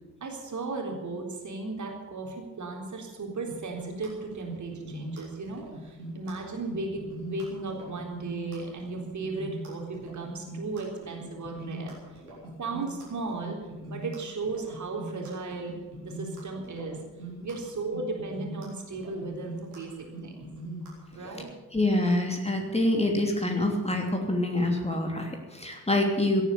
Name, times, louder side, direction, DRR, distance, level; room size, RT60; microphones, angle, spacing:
voice 1, 0.2-12.2 12.6-13.6 13.9-15.8 16.0-17.0 17.4-20.5 21.1-21.5, right 3 dB, 40° right, 1 dB, 3.8 m, -35 dB
sound 1, 3.5-21.4, right 1 dB, 85° right, 3.9 m, -41 dB
voice 2, 21.7-26.4, left 1 dB, 15° left, 2 dB, 2.9 m, -26 dB
17.0 x 9.3 x 8.5 m, 1.2 s
figure-of-eight pair, 45°, 43 cm